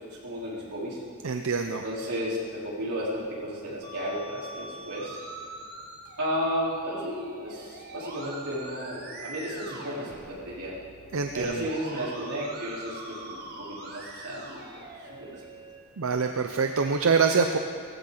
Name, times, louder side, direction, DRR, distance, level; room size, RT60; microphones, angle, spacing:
voice 1, 0.1-1.0 1.8-5.2 6.2-10.7 11.3-14.6 15.1-15.4, equal, 90° right, -7 dB, 3.9 m, -33 dB
voice 2, 1.2-1.8 11.1-11.7 16.0-17.6, right 5 dB, 65° right, 6 dB, 0.6 m, -25 dB
Musical instrument, 3.8-15.8, right 2 dB, 45° right, 1.7 m, -43 dB
18.0 x 15.0 x 4.0 m, 2.1 s
head